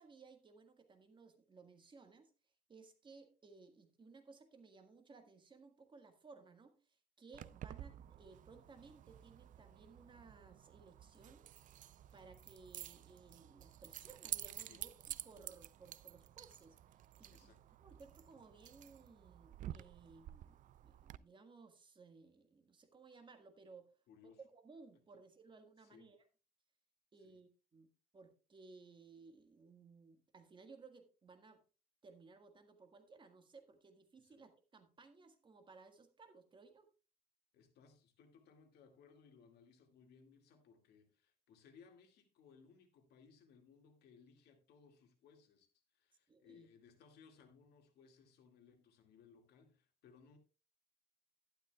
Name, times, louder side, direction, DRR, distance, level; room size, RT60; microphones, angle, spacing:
voice 1, 0.0-2.3 2.7-11.6 12.1-16.8 17.2-17.5 17.8-23.9 24.2-26.2 27.1-31.6 32.0-36.9 46.3-46.7, right 4 dB, 30° right, 1.6 m, -60 dB
Keys jangling, 7.3-21.2, right 12 dB, 50° right, 0.4 m, -51 dB
voice 2, 17.3-17.6 24.1-24.4 25.8-26.1 27.2-27.4 34.2-34.4 37.5-50.4, left 6 dB, 70° left, 2.2 m, -64 dB
12.0 x 11.5 x 2.3 m
cardioid pair, 110°, 17 cm